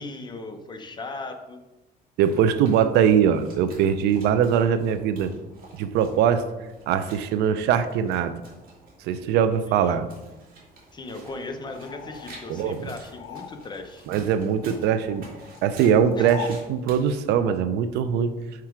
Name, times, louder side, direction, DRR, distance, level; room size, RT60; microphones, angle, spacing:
voice 1, 0.0-1.6 9.7-10.0 10.9-14.1 16.2-16.3, left 3 dB, 25° left, 5 dB, 0.9 m, -37 dB
sound 1, 2.2-17.2, right 2 dB, 60° right, 2.4 m, -49 dB
voice 2, 2.2-5.3 5.8-6.5 6.9-8.4 9.0-10.0 12.5-12.9 14.1-15.2 15.6-18.3, right 8 dB, 85° right, 11 dB, 0.6 m, -22 dB
sound 2, 11.7-14.0 14.2-16.7, left 11 dB, 75° left, 0.4 m, -41 dB
5.9 x 4.8 x 4.6 m, 1.0 s
cardioid pair, 110°, 17 cm